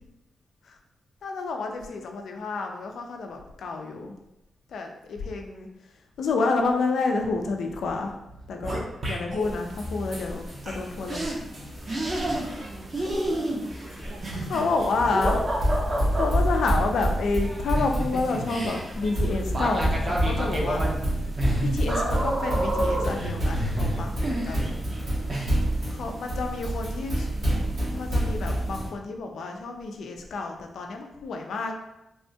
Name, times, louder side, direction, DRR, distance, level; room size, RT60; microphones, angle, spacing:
voice 1, 1.2-4.2 4.7-5.7 6.2-8.2 8.5-11.3 11.8-12.4 12.9-13.1 13.9-14.0 14.5-15.4 16.1-20.8 21.6-24.6 25.9-27.3 27.9-31.7, left 3 dB, 80° left, 3 dB, 0.4 m, -29 dB
sound 1, 7.7-9.5 10.7-10.8 11.1-11.3 11.9-12.7 12.9-16.3 17.4-25.0 25.3-25.5, right 1 dB, 45° right, 0.8 m, -30 dB
sound 2, 9.4-28.9, right 1 dB, 70° right, 1.2 m, -29 dB
voice 2, 12.5-13.8 14.1-14.6, right 3 dB, 85° right, 2 dB, 0.4 m, -46 dB
3.5 x 2.2 x 2.7 m, 0.90 s
cardioid pair, 60°, 0 cm